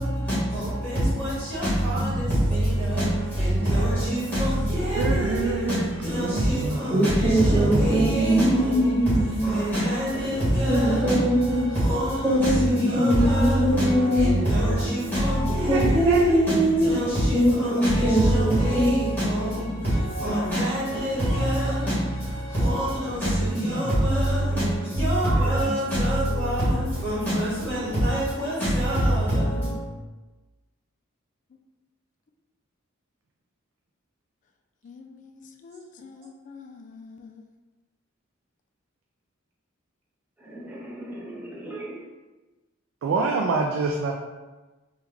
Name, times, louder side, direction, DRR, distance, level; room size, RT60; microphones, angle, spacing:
voice 1, 0.0-29.9, equal, 10° left, -12 dB, 1.4 m, -25 dB
voice 2, 5.0-5.9 6.2-7.1 7.6-8.2 15.7-15.8 16.1-16.3 25.3-25.4 43.0-44.1, right 3 dB, 70° right, 1 dB, 0.3 m, -26 dB
voice 3, 6.9-9.5 10.7-11.6 12.2-14.3 15.7-16.9 17.3-18.9 40.4-42.0, right 1 dB, 10° right, -5 dB, 0.6 m, -23 dB
voice 4, 34.8-37.4, left 4 dB, 40° left, 4 dB, 0.3 m, -45 dB
3.1 x 2.3 x 3.5 m, 1.2 s
head